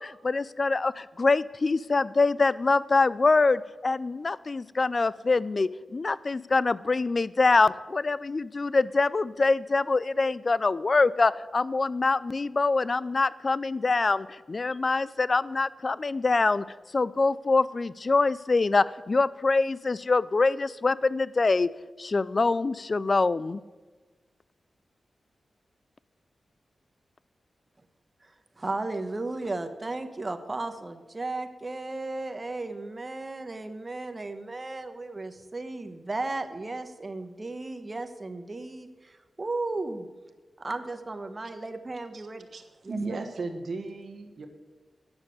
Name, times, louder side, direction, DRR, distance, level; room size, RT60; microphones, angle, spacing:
voice 1, 0.0-16.6 16.9-21.7 22.0-23.6, left 3 dB, 45° left, 18 dB, 0.3 m, -24 dB
voice 2, 28.2-40.1 40.6-42.5 42.8-43.0, right 2 dB, 35° right, 7 dB, 1.1 m, -35 dB
voice 3, 42.5-44.5, right 3 dB, 70° right, 6 dB, 1.3 m, -35 dB
9.7 x 6.5 x 8.0 m, 1.3 s
cardioid pair, 60°, 0 cm